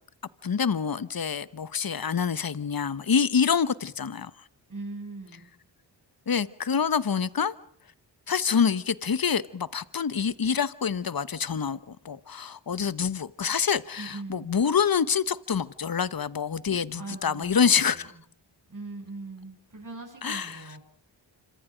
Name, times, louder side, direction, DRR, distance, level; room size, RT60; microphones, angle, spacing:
voice 1, 0.4-4.3 6.3-7.5 8.3-18.1 20.2-20.6, left 6 dB, 50° left, 1.2 m, -26 dB
voice 2, 4.7-5.5 14.0-14.5 16.9-18.2 18.7-20.8, right 3 dB, 45° right, 7.8 m, -41 dB
27.0 x 25.5 x 5.2 m
cardioid pair, 40°, 45 cm